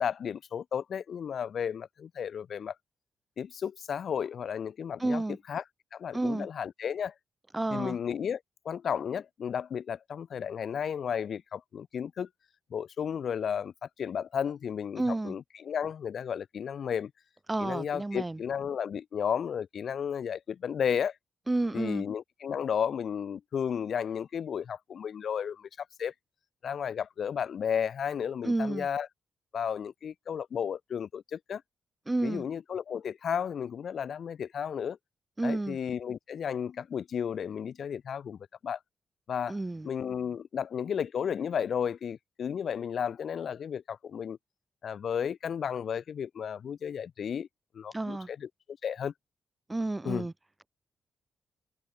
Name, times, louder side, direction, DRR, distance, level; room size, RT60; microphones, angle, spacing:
voice 1, 0.0-2.7 3.4-5.2 5.5-5.6 5.9-7.1 7.7-12.3 12.7-17.1 17.6-21.1 21.7-26.1 26.6-29.1 29.5-31.6 32.2-35.0 35.4-38.8 39.3-39.6 39.8-44.4 44.8-47.5 47.7-49.1 50.0-50.3, left 8 dB, 60° left, 0.6 m, -33 dB
voice 2, 5.0-5.4 6.1-6.5 7.5-8.0 15.0-15.3 17.5-18.4 21.5-22.1 28.4-28.9 32.1-32.4 35.4-35.8 39.5-39.9 47.9-48.3 49.7-50.3, right 2 dB, 15° right, 0.6 m, -30 dB
cardioid pair, 120°, 0 cm